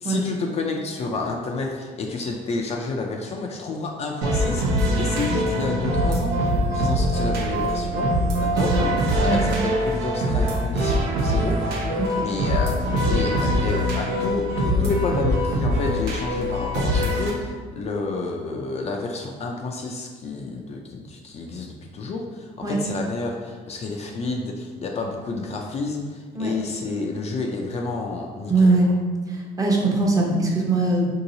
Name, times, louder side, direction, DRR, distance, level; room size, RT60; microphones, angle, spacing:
voice 1, 0.0-8.1 8.4-8.7 9.1-12.8 13.0-28.7, left 3 dB, 40° left, 1 dB, 0.4 m, -30 dB
sound 1, 4.2-17.3, equal, 85° right, 0.7 m, -23 dB
voice 2, 28.5-28.9 29.3-31.2, right 3 dB, 20° right, -2 dB, 0.7 m, -21 dB
3.8 x 2.8 x 2.7 m, 1.5 s
cardioid pair, 110°, 17 cm